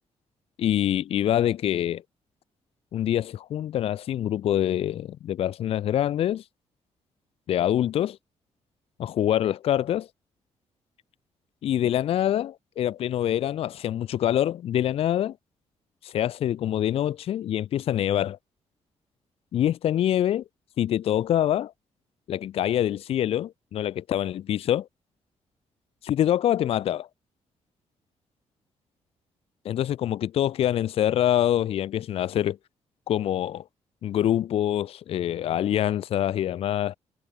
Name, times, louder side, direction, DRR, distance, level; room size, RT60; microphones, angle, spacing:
voice 1, 0.6-2.0 2.9-6.4 7.5-8.2 9.0-10.1 11.6-15.4 16.0-18.4 19.5-20.4 20.8-21.7 22.3-24.9 26.0-27.1 29.6-32.6 33.1-33.6 34.0-36.9, left 11 dB, 55° left, 0.5 m, -25 dB
wide cardioid pair, 175°, 12 cm